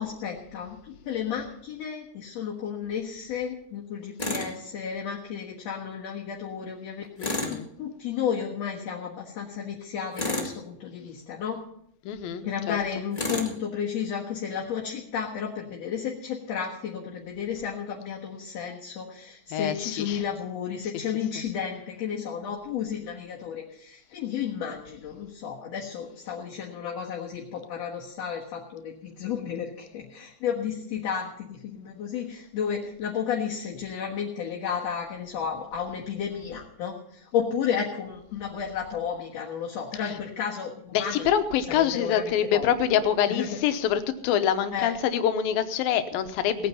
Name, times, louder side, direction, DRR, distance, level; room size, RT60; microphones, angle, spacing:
voice 1, 0.0-11.6 12.4-41.3 41.7-42.7 43.3-43.5 44.7-44.9, left 7 dB, 55° left, -2 dB, 2.4 m, -32 dB
Tools, 4.2-4.5 7.2-7.6 10.1-10.6 13.1-13.6, left 1 dB, 20° left, 1.0 m, -30 dB
voice 2, 7.2-7.7 12.1-12.8 19.5-20.2 40.0-40.2 40.9-46.7, left 9 dB, 85° left, 10 dB, 2.7 m, -26 dB
18.5 x 9.1 x 5.6 m, 0.72 s
omnidirectional pair, 4.1 m